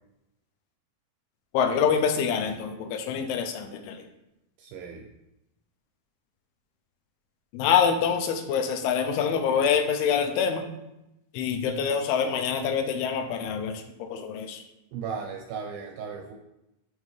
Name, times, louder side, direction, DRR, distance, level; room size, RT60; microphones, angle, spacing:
voice 1, 1.5-4.0 7.5-10.6 11.3-14.6, left 7 dB, 90° left, 6 dB, 2.6 m, -26 dB
voice 2, 4.6-5.1 14.9-16.3, right 6 dB, 80° right, 1 dB, 2.2 m, -36 dB
6.5 x 5.3 x 3.2 m, 0.89 s
omnidirectional pair, 4.5 m